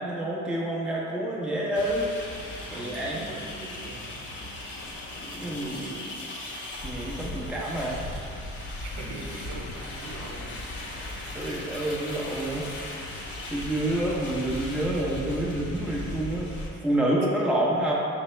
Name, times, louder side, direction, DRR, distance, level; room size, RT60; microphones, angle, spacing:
voice 1, 0.0-2.1 2.7-3.2 5.2-5.7 6.8-8.0 11.0-12.7 12.9-16.5 16.8-17.9, right 1 dB, 5° right, -4 dB, 0.7 m, -28 dB
sound 1, 1.7-16.7, left 1 dB, 40° left, 0.8 m, -37 dB
voice 2, 2.7-4.1 5.4-6.2 8.8-10.6 16.7-16.8 17.5-17.7, right 2 dB, 75° right, -2 dB, 0.7 m, -41 dB
5.2 x 2.0 x 4.3 m, 2.6 s
cardioid pair, 90°, 30 cm